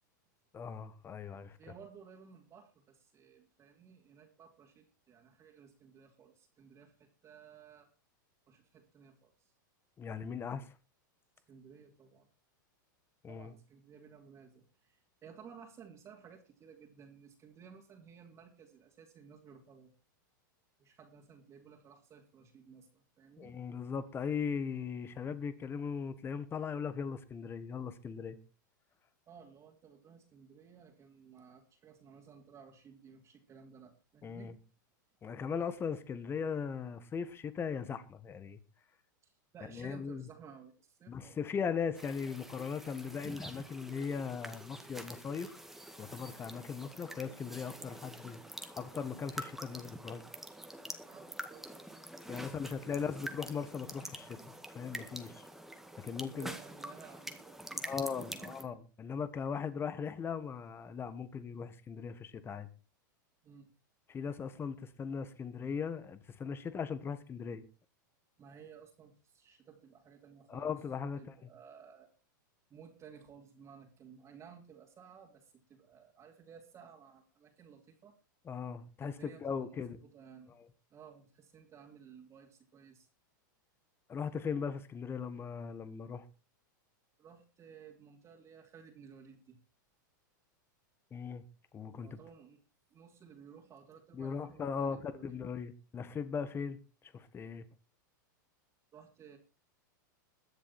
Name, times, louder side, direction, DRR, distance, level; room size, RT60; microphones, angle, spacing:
voice 1, 0.5-1.6 10.0-10.7 13.2-13.5 23.4-28.4 34.2-34.5 35.2-38.6 39.7-40.3 41.1-45.5 46.0-50.2 52.3-54.4 54.7-55.5 56.0-56.5 57.8-62.7 64.1-67.6 70.5-71.5 78.4-80.0 84.1-86.2 91.1-91.4 91.7-92.2 94.1-97.6, left 6 dB, 20° left, 1.6 m, -39 dB
voice 2, 1.6-7.9 8.5-9.5 11.5-12.3 13.3-19.9 20.8-23.5 29.3-34.5 39.2-41.4 51.0-52.0 52.4-53.2 56.3-58.8 63.4-63.7 68.4-70.7 71.2-72.1 72.7-78.1 79.0-80.5 80.9-83.1 87.2-89.6 92.0-92.6 92.9-95.4 98.9-99.4, right 7 dB, 30° right, 3.1 m, -56 dB
sound 1, 41.9-58.6, right 1 dB, 5° right, 1.9 m, -46 dB
22.0 x 7.4 x 4.4 m
hypercardioid pair, 125°, 11 cm